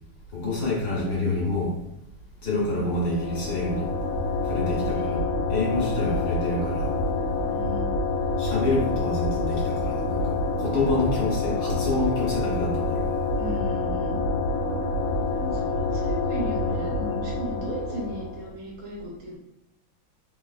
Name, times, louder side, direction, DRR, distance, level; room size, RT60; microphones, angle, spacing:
voice 1, 0.3-1.7 2.4-3.9 4.5-5.2 5.5-6.9 8.4-10.3 10.6-13.1, left 2 dB, 60° left, -5 dB, 1.6 m, -27 dB
sound 1, 2.7-18.5, left 2 dB, 90° left, 1.5 m, -27 dB
voice 2, 4.7-5.4 6.0-6.3 7.5-7.9 13.4-14.2 15.3-19.4, equal, 75° right, -3 dB, 1.8 m, -36 dB
4.0 x 3.1 x 2.3 m, 0.87 s
omnidirectional pair, 2.3 m